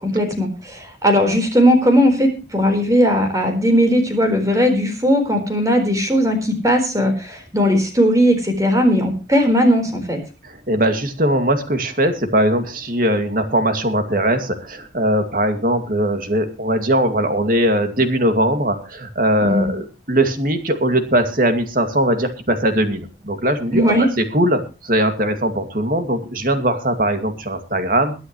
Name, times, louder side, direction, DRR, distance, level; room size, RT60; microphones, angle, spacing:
voice 1, 0.0-10.2 19.4-19.7 23.7-24.1, equal, 20° right, 5 dB, 4.2 m, -17 dB
voice 2, 10.4-28.1, right 1 dB, 50° right, 7 dB, 2.3 m, -20 dB
22.5 x 10.0 x 3.1 m, 0.32 s
head